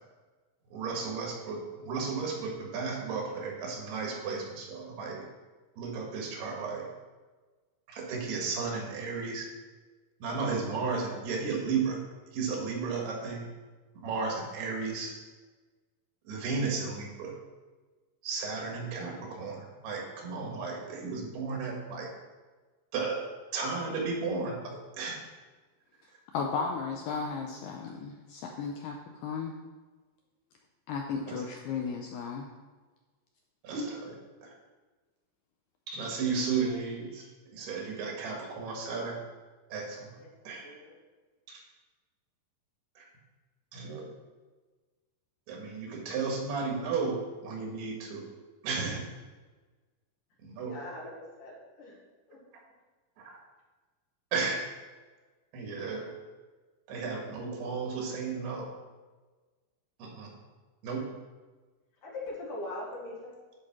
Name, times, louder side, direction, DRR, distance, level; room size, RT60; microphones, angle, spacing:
voice 1, 0.7-5.2 5.8-6.8 7.9-9.5 10.2-12.0 12.3-13.5 14.0-15.1 16.3-17.3 18.2-22.1 22.9-23.2 23.5-25.2 31.3-31.4 33.6-34.5 35.9-37.2 37.5-39.2 39.7-40.1 40.5-40.7 41.5-41.6 43.0-43.1 43.7-44.1 45.5-47.2 47.4-48.2 48.6-49.0 50.4-50.7 53.2-53.4 54.3-54.6 55.5-56.1 56.9-58.7 60.0-60.3 60.8-61.0, right 4 dB, 85° right, 0 dB, 3.7 m, -34 dB
voice 2, 26.3-29.5 30.9-32.5 37.1-37.3, left 5 dB, 80° left, 2 dB, 2.1 m, -35 dB
voice 3, 40.2-41.0 50.7-51.1 51.4-52.0 52.3-52.4 62.0-63.3, left 2 dB, 60° left, -3 dB, 3.1 m, -41 dB
10.0 x 4.6 x 5.9 m, 1.3 s
omnidirectional pair, 4.6 m